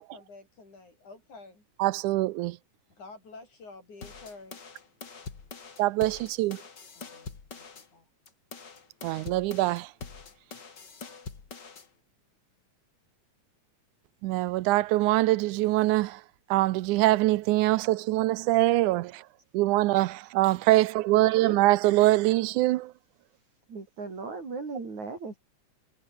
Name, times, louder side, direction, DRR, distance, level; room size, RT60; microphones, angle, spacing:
voice 1, 0.1-1.6 3.0-4.6 6.0-6.1 7.0-8.1, left 3 dB, 65° left, 9.5 m, -49 dB
voice 2, 1.8-2.6 5.8-6.6 9.0-9.9 14.2-16.2 16.5-19.2 19.5-22.9, right 18 dB, 80° right, 2.0 m, -24 dB
sound 1, 4.0-7.9 8.3-11.9, left 5 dB, 35° left, 2.9 m, -44 dB
voice 3, 21.1-21.6 23.7-25.4, right 4 dB, 60° right, 6.6 m, -37 dB
omnidirectional pair, 3.7 m